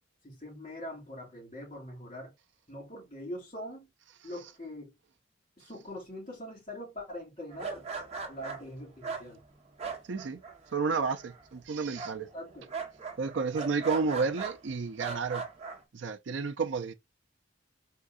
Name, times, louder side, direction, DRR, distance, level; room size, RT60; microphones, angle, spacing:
voice 1, 0.2-2.3 2.7-3.9 4.2-4.9 5.6-7.9 8.3-9.4 12.3-12.7, left 1 dB, 30° left, 2.9 m, -42 dB
sound 1, 7.5-10.8 11.0-11.6 12.0-14.6 15.0-15.8, right 5 dB, 35° right, 1.1 m, -39 dB
voice 2, 10.1-10.4 10.7-12.3 13.2-15.4 15.9-16.9, right 4 dB, 70° right, 0.5 m, -31 dB
4.5 x 3.7 x 2.4 m
head